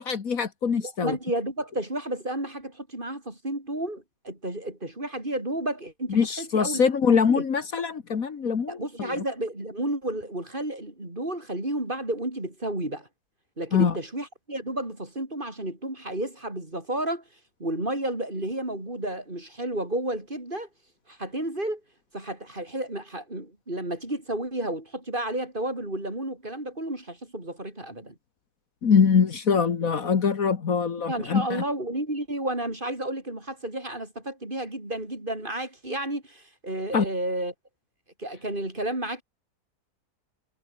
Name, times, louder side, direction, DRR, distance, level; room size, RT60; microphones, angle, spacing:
voice 1, 0.0-1.2 6.1-9.2 13.7-14.0 28.8-31.6 36.9-37.1, left 6 dB, 60° left, 2.0 m, -23 dB
voice 2, 0.8-6.8 7.3-7.4 8.7-13.1 13.6-17.2 17.6-20.7 21.1-21.8 22.1-28.2 31.1-37.5 38.2-39.2, right 1 dB, 30° right, 5.5 m, -32 dB
omnidirectional pair, 1.7 m